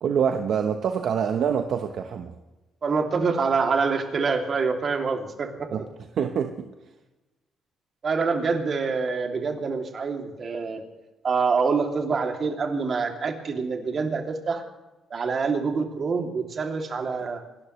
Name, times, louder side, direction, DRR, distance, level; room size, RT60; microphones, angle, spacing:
voice 1, 0.0-2.3 5.7-5.8 6.2-6.7, right 7 dB, 65° right, 6 dB, 1.1 m, -25 dB
voice 2, 2.8-5.7 8.0-10.8 11.2-14.6 15.1-17.4, right 4 dB, 45° right, 3 dB, 2.8 m, -26 dB
28.5 x 13.0 x 3.3 m, 1.1 s
cardioid pair, 90°, 0 cm